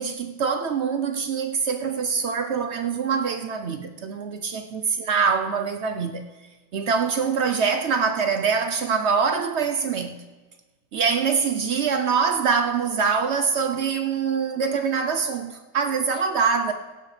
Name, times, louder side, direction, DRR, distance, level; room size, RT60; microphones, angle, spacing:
voice 1, 0.0-6.2 6.7-10.2 10.9-16.7, right 6 dB, 65° right, 0.7 m, -24 dB
17.5 x 15.5 x 3.2 m
omnidirectional pair, 1.8 m